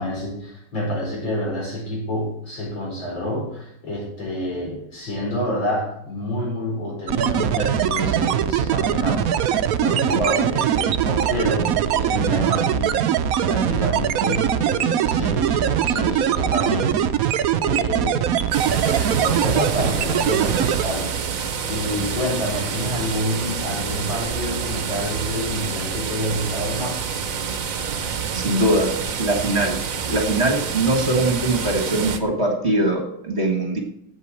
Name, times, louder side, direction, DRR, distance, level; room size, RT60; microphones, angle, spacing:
voice 1, 0.0-13.0 13.4-18.3 18.6-21.1 21.7-27.1, left 1 dB, 75° left, -3 dB, 5.3 m, -28 dB
sound 1, 7.1-20.8, right 9 dB, 70° right, 0.8 m, -21 dB
sound 2, 18.5-32.2, right 6 dB, 50° right, 1.2 m, -28 dB
voice 2, 28.3-28.9 29.2-29.8 30.1-33.8, right 1 dB, 35° right, 2 dB, 1.9 m, -21 dB
8.3 x 8.2 x 7.5 m, 0.75 s
omnidirectional pair, 2.1 m